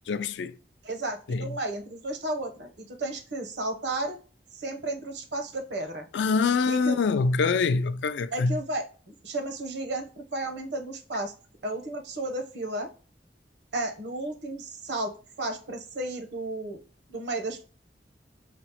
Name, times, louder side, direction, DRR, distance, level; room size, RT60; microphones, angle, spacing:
voice 1, 0.1-0.6 1.3-1.5 6.1-8.6, left 4 dB, 75° left, 0.4 m, -25 dB
voice 2, 0.8-4.2 4.5-6.1 6.6-7.0 8.3-11.3 11.6-12.9 13.7-16.8 17.1-17.7, right 2 dB, 75° right, 0.9 m, -33 dB
5.0 x 2.0 x 2.8 m
head